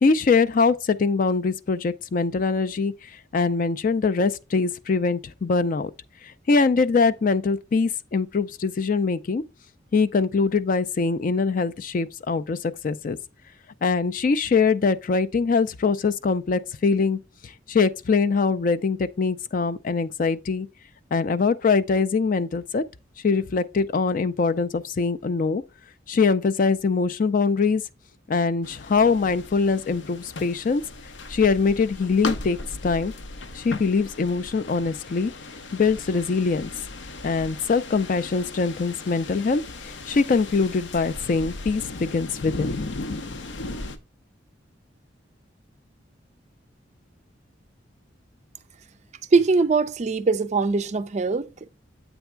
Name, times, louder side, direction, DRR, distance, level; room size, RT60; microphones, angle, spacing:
voice 1, 0.0-5.9 6.5-9.4 9.9-13.2 13.8-17.2 17.7-20.7 21.1-22.8 23.2-25.6 26.1-27.8 28.3-30.8 31.3-32.6 32.8-33.1 33.5-35.3 35.7-36.7 37.2-42.8, left 4 dB, 45° left, 0.4 m, -23 dB
sound 1, 28.6-44.0, left 2 dB, 80° left, 0.7 m, -37 dB
voice 2, 49.3-51.7, right 4 dB, 40° right, 0.4 m, -22 dB
8.1 x 3.5 x 4.5 m
head